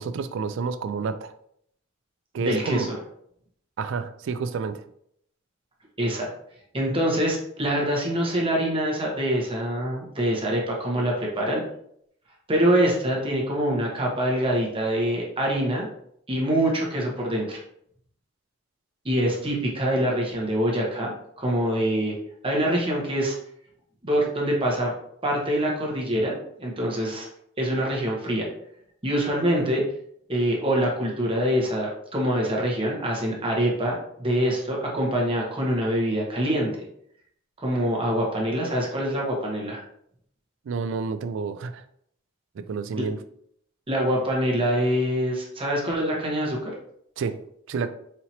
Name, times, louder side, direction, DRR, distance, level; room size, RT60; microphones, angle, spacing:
voice 1, 0.0-1.3 2.3-2.9 3.8-4.8 40.7-41.8 42.6-43.2 47.2-47.9, right 5 dB, 65° right, 11 dB, 0.3 m, -29 dB
voice 2, 2.4-3.0 6.0-6.3 6.7-11.6 12.5-15.9 16.3-17.6 19.0-22.1 22.4-23.4 24.0-24.9 25.2-27.3 27.6-28.5 29.0-29.8 30.3-36.7 37.6-39.8 43.0-43.1 43.9-46.7, equal, 25° right, -2 dB, 1.0 m, -25 dB
4.3 x 2.9 x 2.7 m, 0.69 s
head